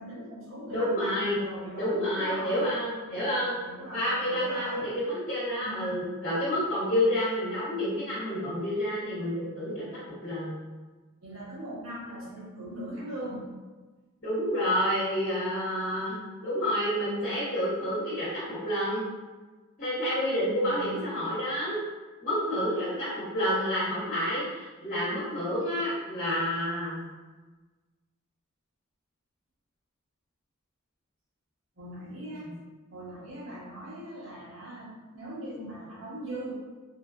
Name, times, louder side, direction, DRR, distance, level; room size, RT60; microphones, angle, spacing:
voice 1, 0.0-2.7 3.0-4.9 5.6-6.1 11.2-13.5 20.4-20.9 31.8-32.5 32.9-36.5, right 1 dB, 65° right, -7 dB, 1.0 m, -40 dB
voice 2, 0.7-1.4 1.7-3.6 3.9-10.6 14.2-16.2 16.4-19.0 19.8-21.8 22.2-27.0 32.4-32.5, equal, 40° left, -10 dB, 0.9 m, -29 dB
3.2 x 2.2 x 2.4 m, 1.3 s
head